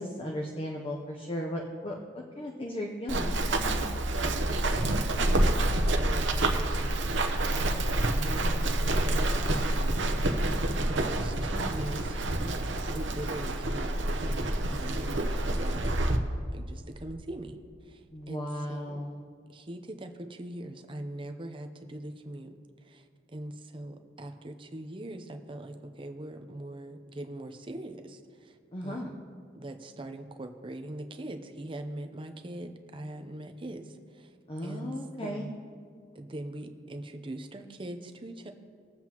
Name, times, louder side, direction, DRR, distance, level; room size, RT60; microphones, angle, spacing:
voice 1, 0.0-2.0 2.4-3.8 18.1-19.2 28.7-29.2 34.5-35.5, left 1 dB, 30° left, 0 dB, 0.8 m, -36 dB
Run, 3.1-16.2, right 1 dB, 90° right, 0.9 m, -28 dB
voice 2, 4.4-7.2 7.5-10.5 10.9-15.9 16.5-17.6 17.9-18.0 18.3-19.0 19.5-22.6 22.8-28.5 28.8-29.2 29.5-34.3 34.6-34.9 35.2-35.5 36.1-38.5, right 1 dB, 30° right, 6 dB, 0.7 m, -42 dB
20.0 x 7.7 x 3.0 m, 2.2 s
head